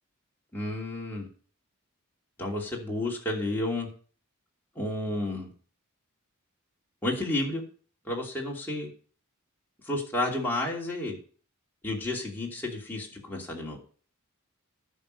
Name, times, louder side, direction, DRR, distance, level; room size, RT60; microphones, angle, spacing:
voice 1, 0.5-1.3 2.4-3.9 4.7-5.5 7.0-7.6 8.0-8.9 9.8-11.2 11.8-13.8, left 1 dB, 10° left, -3 dB, 2.8 m, -31 dB
11.0 x 6.2 x 6.5 m, 0.43 s
head